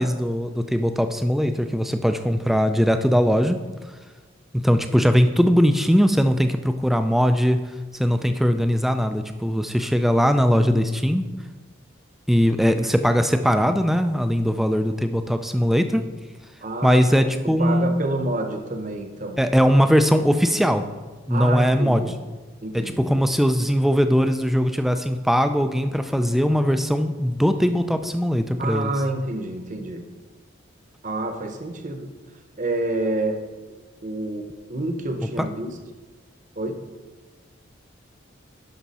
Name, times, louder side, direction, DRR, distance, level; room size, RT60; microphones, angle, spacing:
voice 1, 0.0-3.6 4.5-7.6 8.0-11.3 12.3-16.0 16.8-18.0 19.4-20.9 21.3-22.1 22.7-28.9 35.4-35.5, equal, ahead, 8 dB, 0.4 m, -20 dB
voice 2, 16.6-17.1 17.4-19.4 21.3-22.1 22.6-23.3 28.6-30.1 31.0-32.1 32.6-33.4 34.0-35.7 36.6-36.8, right 2 dB, 40° right, 5 dB, 0.9 m, -28 dB
11.5 x 5.8 x 4.2 m, 1.3 s
head